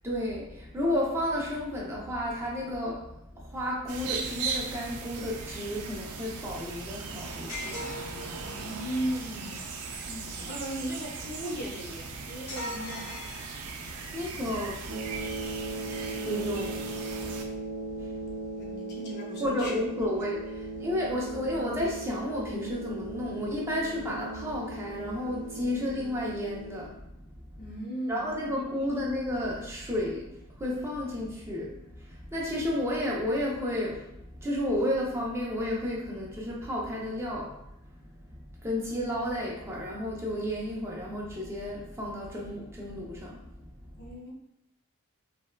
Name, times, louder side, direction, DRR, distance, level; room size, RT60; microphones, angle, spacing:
voice 1, 0.0-7.9 10.1-10.5 14.1-14.9 16.1-16.8 17.1-17.4 18.0-18.1 19.4-20.4 20.7-27.0 28.1-30.3 30.6-37.6 38.6-43.7, left 1 dB, 10° right, -4 dB, 0.5 m, -32 dB
sound 1, 3.9-17.5, right 5 dB, 75° right, 0.4 m, -38 dB
sound 2, 7.5-8.7 12.5-14.1, left 1 dB, 70° left, 1.0 m, -40 dB
voice 2, 8.4-13.2 18.6-19.7 20.0-20.3 27.6-28.4 44.0-44.3, right 1 dB, 45° left, -2 dB, 0.5 m, -37 dB
sound 3, 14.9-26.8, right 2 dB, 60° right, 1.1 m, -38 dB
3.4 x 2.2 x 2.2 m, 0.83 s
head